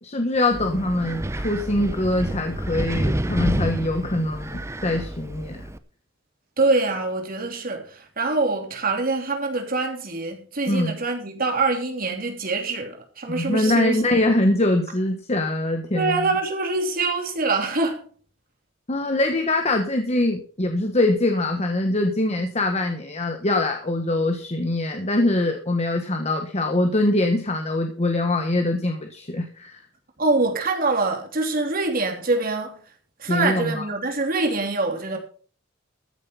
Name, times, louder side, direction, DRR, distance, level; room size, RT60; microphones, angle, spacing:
voice 1, 0.0-5.7 10.7-10.9 13.3-16.3 18.9-29.8 33.3-33.8, left 2 dB, 35° left, 1.3 m, -23 dB
Wind, 0.5-5.8, right 1 dB, 15° right, 0.7 m, -29 dB
voice 2, 6.6-14.0 15.9-18.1 30.2-32.8 33.2-35.2, right 3 dB, 50° right, 3.0 m, -24 dB
14.0 x 7.6 x 5.6 m
head